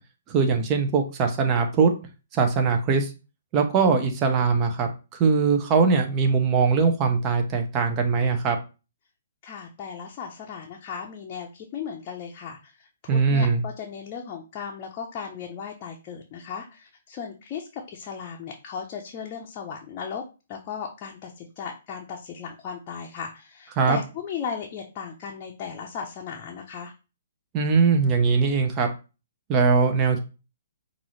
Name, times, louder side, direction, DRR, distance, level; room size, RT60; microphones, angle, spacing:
voice 1, 0.3-1.9 2.3-3.1 3.5-8.6 13.1-13.6 23.8-24.0 27.5-28.9 29.5-30.2, right 5 dB, 25° right, 5 dB, 0.8 m, -21 dB
voice 2, 9.4-20.2 20.5-26.9, left 7 dB, 30° left, 0 dB, 0.7 m, -36 dB
5.4 x 2.6 x 3.1 m, 0.31 s
hypercardioid pair, 140°, 0 cm